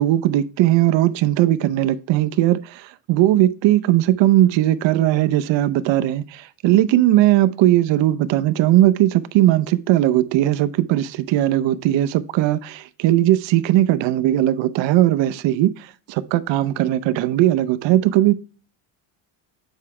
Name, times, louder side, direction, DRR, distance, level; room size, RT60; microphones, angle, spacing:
voice 1, 0.0-18.3, right 14 dB, 65° right, 0.7 m, -18 dB
8.1 x 4.8 x 3.2 m
cardioid pair, 130°, 47 cm